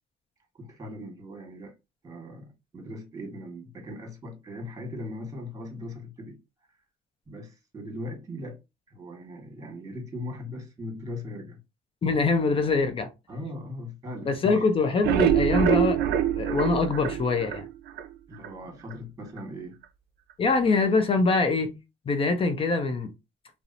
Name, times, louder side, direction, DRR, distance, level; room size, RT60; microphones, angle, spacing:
voice 1, 0.6-1.7 2.0-6.4 7.3-8.6 8.9-11.6 13.3-14.7 18.3-19.8, left 1 dB, 20° right, 1.3 m, -39 dB
voice 2, 12.0-13.1 14.3-16.0 16.3-17.6 20.4-21.8 22.1-23.1, left 4 dB, 35° left, 0.5 m, -24 dB
sound 1, 14.8-18.1 18.4-18.5 18.9-19.0 19.4-19.5, right 10 dB, 75° right, 0.4 m, -24 dB
2.7 x 2.0 x 2.5 m
cardioid pair, 110°, 17 cm